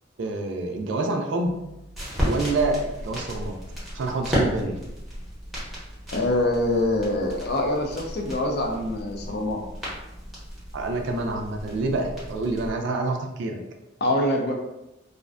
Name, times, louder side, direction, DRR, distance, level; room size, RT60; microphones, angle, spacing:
voice 1, 0.2-1.6 2.2-3.6 3.9-4.8 10.7-13.6, right 2 dB, 60° right, 3 dB, 0.3 m, -27 dB
sound 1, 1.5-12.7, equal, ahead, 0.7 m, -34 dB
voice 2, 6.1-9.6 14.0-14.5, left 1 dB, 50° left, 1 dB, 0.4 m, -24 dB
2.4 x 2.1 x 2.4 m, 0.94 s
head